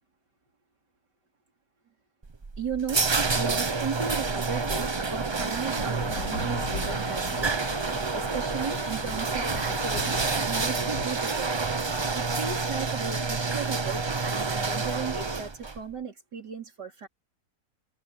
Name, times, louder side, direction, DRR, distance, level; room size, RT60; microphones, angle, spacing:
sound 1, 2.2-15.8, right 4 dB, 40° right, 0.4 m, -28 dB
voice 1, 2.6-3.0 3.3-7.8 8.1-11.7 12.1-17.1, right 6 dB, 80° right, 4.6 m, -36 dB
sound 2, 5.7-11.1, left 2 dB, 75° left, 4.0 m, -38 dB
open air
omnidirectional pair, 1.8 m